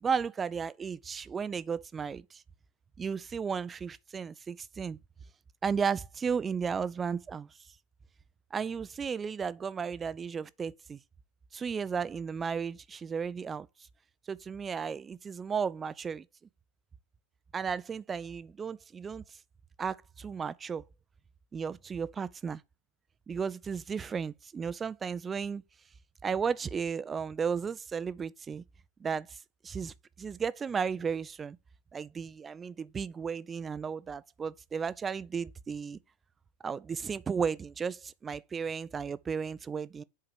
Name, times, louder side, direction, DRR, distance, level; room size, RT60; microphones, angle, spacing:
voice 1, 0.0-2.4 3.0-5.0 5.6-7.5 8.5-11.0 11.5-13.7 14.3-16.2 17.5-19.2 19.8-20.8 21.5-22.6 23.3-25.6 26.2-28.6 29.0-29.4 29.6-31.6 31.9-36.0 36.6-40.0, right 6 dB, 20° right, 0.4 m, -34 dB
7.7 x 4.8 x 4.5 m
figure-of-eight pair, 90°, 0 cm